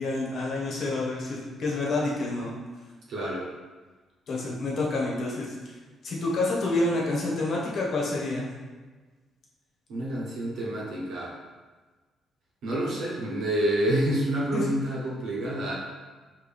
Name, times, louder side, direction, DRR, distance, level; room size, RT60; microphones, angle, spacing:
voice 1, 0.0-2.5 4.3-5.8 6.0-8.5 14.5-14.7, left 2 dB, 60° left, -3 dB, 1.2 m, -28 dB
voice 2, 3.1-3.5 9.9-11.3 12.6-15.7, right 1 dB, 75° right, -4 dB, 1.3 m, -28 dB
4.7 x 3.1 x 3.5 m, 1.3 s
cardioid pair, 90°, 0 cm